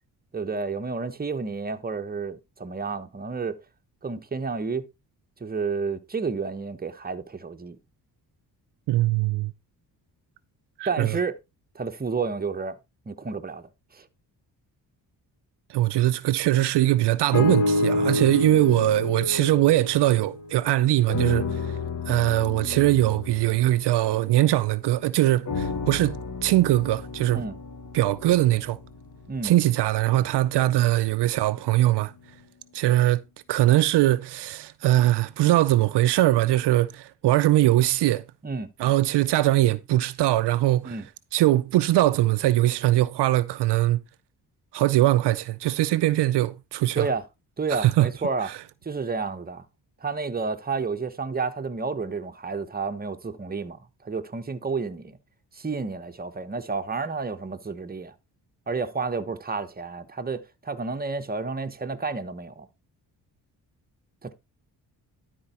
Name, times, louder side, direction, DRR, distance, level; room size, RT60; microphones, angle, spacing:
voice 1, 0.3-3.6 4.0-4.9 5.4-7.8 10.9-11.4 11.7-12.8 13.1-14.1 27.3-27.6 29.3-29.5 38.4-38.7 40.8-41.1 46.9-47.2 47.6-48.5 48.8-49.6 50.0-55.2 55.5-58.1 58.7-62.7 64.2-64.3, right 4 dB, 20° right, 1.1 m, -30 dB
voice 2, 8.9-9.5 10.8-11.2 15.7-21.8 22.1-27.4 27.9-28.8 29.4-32.1 32.7-33.2 33.5-38.2 38.8-41.0 41.3-44.0 44.7-47.1 47.7-48.1, right 15 dB, 75° right, 0.6 m, -21 dB
sound 1, 17.3-20.7 21.1-24.8 25.5-29.7 30.3-30.4, left 2 dB, 45° left, 1.9 m, -30 dB
12.0 x 4.6 x 4.2 m
cardioid pair, 75°, 41 cm